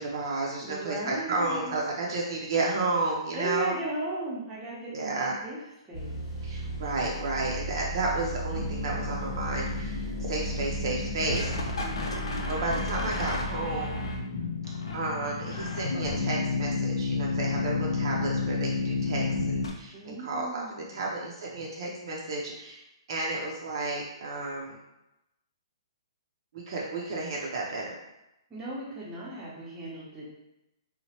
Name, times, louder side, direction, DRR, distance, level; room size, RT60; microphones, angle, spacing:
voice 1, 0.0-3.7 4.9-5.3 6.4-11.7 12.5-14.0 14.9-20.6 20.9-22.8 23.1-24.8 26.5-28.0, right 2 dB, 50° right, -2 dB, 0.5 m, -32 dB
voice 2, 0.6-1.8 3.3-5.6 5.8-6.4 11.7-12.8 19.9-21.1 28.5-30.3, right 2 dB, 15° right, -6 dB, 0.7 m, -37 dB
sound 1, 5.9-14.2, right 1 dB, 5° left, 1.0 m, -36 dB
sound 2, 8.5-19.7, left 4 dB, 75° left, 0.6 m, -31 dB
2.9 x 2.1 x 2.8 m, 0.90 s
hypercardioid pair, 155°, 3 cm